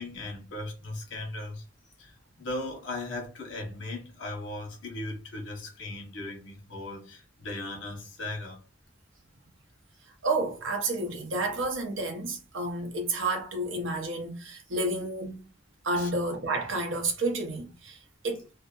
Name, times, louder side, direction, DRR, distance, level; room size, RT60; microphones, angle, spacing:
voice 1, 0.0-1.6 2.0-8.6 16.0-16.1, left 2 dB, 75° left, 0.9 m, -38 dB
voice 2, 10.2-15.4 15.8-18.0 18.2-18.4, right 2 dB, 90° right, 0.6 m, -30 dB
2.6 x 2.0 x 2.3 m
head